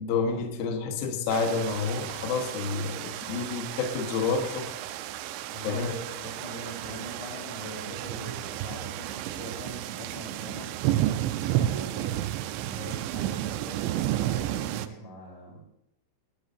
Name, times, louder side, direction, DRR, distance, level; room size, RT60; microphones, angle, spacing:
voice 1, 0.0-4.8 5.6-5.9, left 4 dB, 70° left, 4 dB, 2.3 m, -29 dB
sound 1, 1.3-14.9, right 13 dB, 85° right, 2.6 m, -32 dB
voice 2, 5.5-12.2 12.5-13.8 14.3-15.7, equal, 90° left, -2 dB, 6.8 m, -42 dB
19.5 x 12.0 x 2.6 m, 0.81 s
omnidirectional pair, 5.8 m